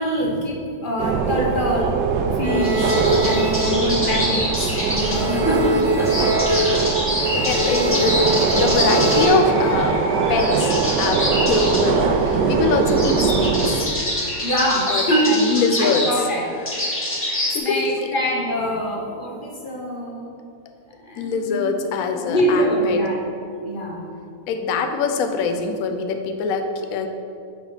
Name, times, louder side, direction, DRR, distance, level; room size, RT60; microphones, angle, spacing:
voice 1, 0.0-1.9 2.4-6.1 6.4-6.9 7.7-8.0 14.4-16.5 17.6-20.3 21.0-23.2 23.6-24.0, equal, 40° left, -1 dB, 0.9 m, -24 dB
sound 1, 1.0-13.9, right 5 dB, 90° right, 1.2 m, -21 dB
sound 2, 2.4-4.6 4.9-9.3, left 1 dB, 30° right, 0.7 m, -25 dB
sound 3, 2.5-17.6, left 1 dB, 10° left, 1.6 m, -26 dB
voice 2, 7.4-8.2 8.5-10.0 10.3-13.9 14.9-16.1 17.5-17.8 21.2-23.0 24.5-27.1, left 5 dB, 65° left, 6 dB, 1.0 m, -23 dB
7.2 x 4.9 x 5.8 m, 2.5 s
omnidirectional pair, 1.8 m